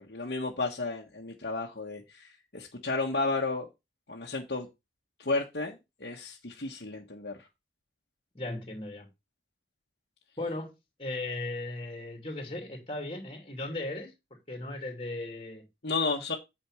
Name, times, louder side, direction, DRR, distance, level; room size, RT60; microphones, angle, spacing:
voice 1, 0.0-3.7 4.1-4.7 5.2-7.4 15.8-16.4, left 3 dB, 70° left, 1.3 m, -32 dB
voice 2, 8.3-9.1 10.4-10.7 11.0-14.1 14.5-15.6, left 2 dB, 30° left, 2.6 m, -36 dB
8.9 x 5.1 x 4.8 m
head